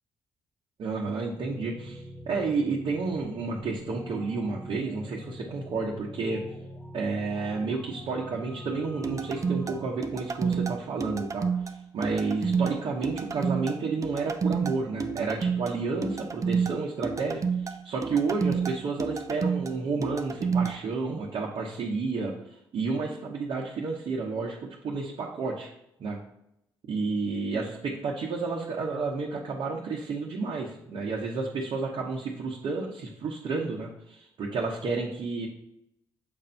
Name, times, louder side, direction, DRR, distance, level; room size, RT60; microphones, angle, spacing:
voice 1, 0.8-6.4 6.9-25.7 26.0-26.2 26.9-35.5, right 4 dB, 65° right, -3 dB, 1.0 m, -31 dB
sound 1, 1.4-9.9, equal, 20° left, 0.9 m, -44 dB
sound 2, 9.0-20.8, right 5 dB, 35° right, 0.5 m, -29 dB
6.6 x 2.6 x 5.6 m, 0.79 s
supercardioid pair, 55°, 9 cm